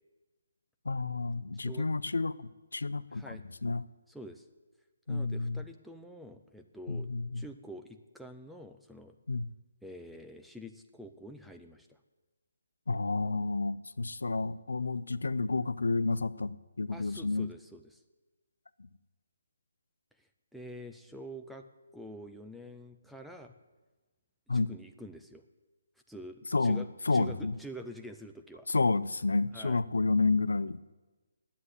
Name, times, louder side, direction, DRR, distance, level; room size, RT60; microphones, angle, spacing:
voice 1, 0.8-3.8 5.1-5.7 6.9-7.4 9.3-9.5 12.9-17.5 18.8-18.9 24.5-24.7 26.5-27.6 28.7-30.9, left 3 dB, 90° left, 16 dB, 0.5 m, -30 dB
voice 2, 1.5-1.9 3.1-3.4 4.1-4.4 5.1-7.1 7.4-9.2 9.8-12.0 16.9-18.0 20.2-21.7 21.9-23.5 24.5-25.4 26.1-28.7 29.5-29.8, equal, ahead, 5 dB, 0.6 m, -47 dB
9.7 x 8.3 x 9.7 m, 1.2 s
hypercardioid pair, 160°, 0 cm